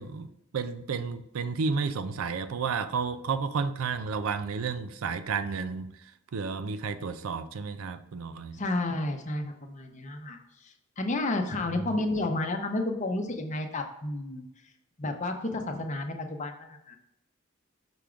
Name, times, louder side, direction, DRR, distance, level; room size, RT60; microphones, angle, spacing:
voice 1, 0.0-8.6 11.7-12.0, right 5 dB, 80° right, 11 dB, 0.5 m, -32 dB
voice 2, 8.5-14.5 15.0-17.0, left 2 dB, 35° left, 4 dB, 0.7 m, -31 dB
6.0 x 3.5 x 4.9 m, 0.82 s
head